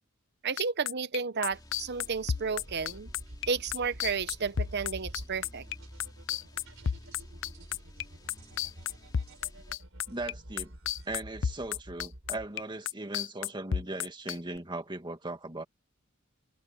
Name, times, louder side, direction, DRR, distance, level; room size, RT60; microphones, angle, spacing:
voice 1, 0.4-3.1 3.5-5.7, right 5 dB, 55° right, 0.9 m, -32 dB
sound 1, 0.6-10.3 10.6-14.6, left 8 dB, 65° left, 0.5 m, -31 dB
sound 2, 1.5-9.7, equal, 20° left, 2.4 m, -52 dB
sound 3, 2.6-12.8, right 1 dB, 70° right, 4.5 m, -49 dB
voice 2, 10.1-10.7 11.1-15.6, right 2 dB, 20° right, 2.1 m, -38 dB
head